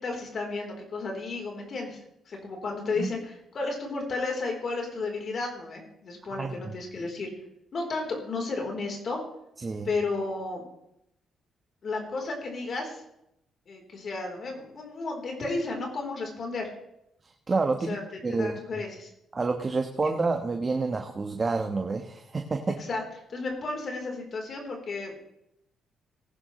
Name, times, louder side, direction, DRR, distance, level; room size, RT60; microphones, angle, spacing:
voice 1, 0.0-2.0 2.3-7.3 7.7-9.2 9.8-10.6 11.8-13.0 13.7-16.7 17.9-18.0 18.3-19.1 22.9-23.0 23.3-25.1, left 3 dB, 50° left, 1 dB, 3.7 m, -33 dB
voice 2, 6.4-6.7 9.6-9.9 17.5-17.9 18.2-18.6 19.3-22.8, right 3 dB, 30° right, 4 dB, 1.1 m, -28 dB
18.5 x 10.5 x 3.2 m, 0.81 s
cardioid pair, 90°, 0 cm